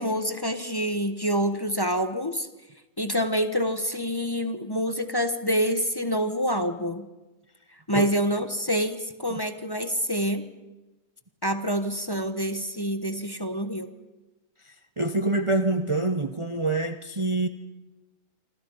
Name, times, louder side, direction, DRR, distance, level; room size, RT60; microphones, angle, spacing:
voice 1, 0.0-2.5 3.0-7.1 7.9-10.5 11.4-13.9, equal, 20° left, 8 dB, 1.2 m, -27 dB
voice 2, 15.0-17.5, right 2 dB, 25° right, 8 dB, 0.9 m, -25 dB
27.0 x 25.5 x 5.6 m, 1.1 s
omnidirectional pair, 1.3 m